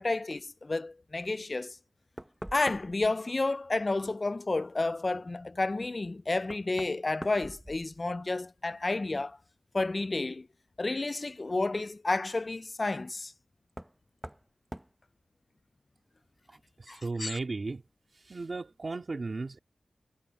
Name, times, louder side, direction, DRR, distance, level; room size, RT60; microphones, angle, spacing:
voice 1, 0.0-1.8 2.5-9.4 9.7-10.5 10.8-13.3 16.9-17.4, left 2 dB, 35° left, 0.3 m, -31 dB
Knock, 1.7-1.8 2.2-3.1 5.6-5.7 6.4-8.3 8.6-9.2 10.9-11.0 13.7-14.0 14.2-14.5 14.7-14.9, right 1 dB, 5° right, 0.7 m, -44 dB
voice 2, 16.5-17.8 18.1-19.6, right 3 dB, 45° right, 2.1 m, -36 dB
wide cardioid pair, 110°, 0 cm